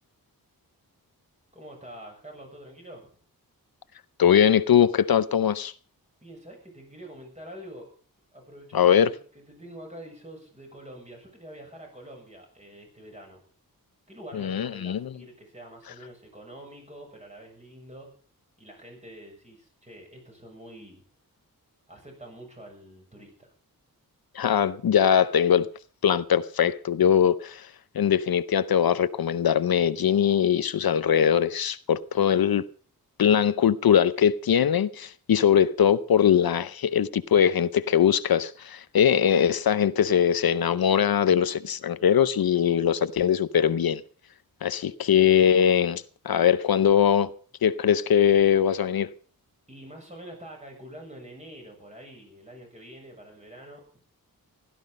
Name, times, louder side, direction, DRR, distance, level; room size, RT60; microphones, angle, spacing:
voice 1, 1.5-3.2 6.2-7.9 8.3-13.4 14.1-18.1 18.6-21.0 21.9-23.5 32.2-32.3 49.7-53.8, right 1 dB, 20° right, 7.0 m, -46 dB
voice 2, 4.2-5.7 8.7-9.1 14.3-15.1 24.3-25.7 26.0-32.6 33.2-44.0 44.6-47.3 47.6-49.1, left 8 dB, 75° left, 0.7 m, -21 dB
16.0 x 13.0 x 5.2 m
wide cardioid pair, 120°, 37 cm